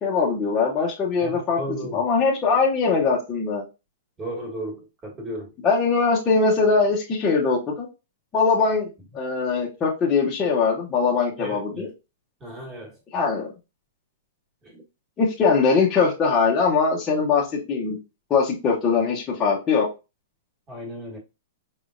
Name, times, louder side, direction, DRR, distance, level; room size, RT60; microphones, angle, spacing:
voice 1, 0.0-1.6 1.9-3.6 5.6-7.9 8.3-11.9 13.1-13.5 15.2-18.0 18.3-19.9, left 4 dB, 15° left, 0.8 m, -21 dB
voice 2, 1.2-2.0 4.2-5.5 11.4-11.9 12.4-13.0 14.6-14.8 20.7-21.2, right 1 dB, 10° right, 1.4 m, -35 dB
5.1 x 3.3 x 2.5 m
hypercardioid pair, 175°, 0 cm